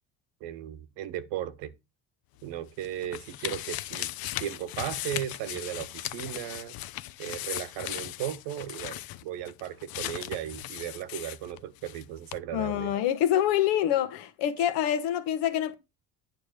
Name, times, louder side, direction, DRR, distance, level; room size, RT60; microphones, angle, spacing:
voice 1, 0.4-1.7 2.4-4.1 4.4-6.7 7.2-12.9, right 11 dB, 80° right, 1.1 m, -36 dB
sound 1, 2.4-12.0 12.3-12.4, left 14 dB, 60° left, 0.7 m, -38 dB
voice 2, 12.5-15.8, left 11 dB, 80° left, 1.3 m, -26 dB
9.3 x 3.4 x 6.6 m
supercardioid pair, 90°, 41 cm